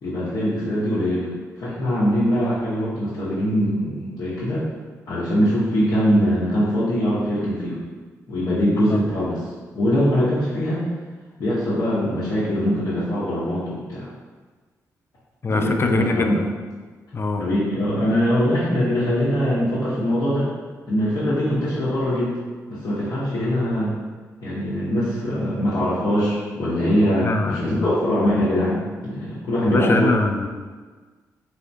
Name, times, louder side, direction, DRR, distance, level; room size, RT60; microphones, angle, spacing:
voice 1, 0.0-1.3 1.6-4.6 5.1-7.8 8.3-9.4 9.7-10.8 11.4-14.1 15.5-16.4 17.4-20.5 20.9-22.4 22.7-23.9 24.4-30.1, equal, 65° left, -11 dB, 1.0 m, -22 dB
voice 2, 15.4-16.3 17.1-17.4 27.2-27.9 29.6-30.5, left 3 dB, 35° left, 5 dB, 0.4 m, -22 dB
3.5 x 3.3 x 2.7 m, 1.4 s
supercardioid pair, 60°, 7 cm